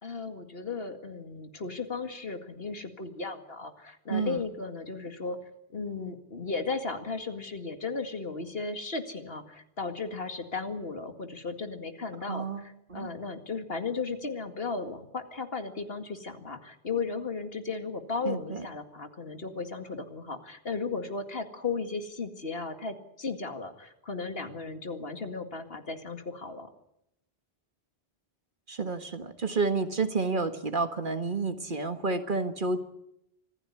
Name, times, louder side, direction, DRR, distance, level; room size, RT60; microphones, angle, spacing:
voice 1, 0.0-5.4 5.7-26.7, left 4 dB, 70° left, 7 dB, 2.4 m, -35 dB
voice 2, 4.1-4.4 12.3-13.1 18.3-18.6 28.7-32.8, right 4 dB, 50° right, 8 dB, 1.8 m, -30 dB
25.5 x 15.5 x 9.8 m, 0.82 s
omnidirectional pair, 1.1 m